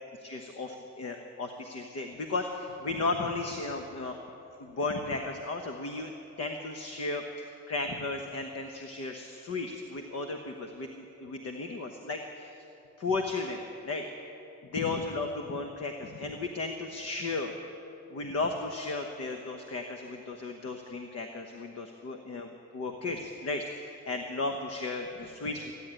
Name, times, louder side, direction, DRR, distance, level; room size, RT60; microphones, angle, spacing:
voice 1, 0.2-4.2 4.6-6.1 6.4-12.6 13.0-14.0 14.7-17.5 18.1-25.7, left 3 dB, 55° left, 4 dB, 1.2 m, -35 dB
15.5 x 9.7 x 9.0 m, 2.8 s
cardioid pair, 90°, 30 cm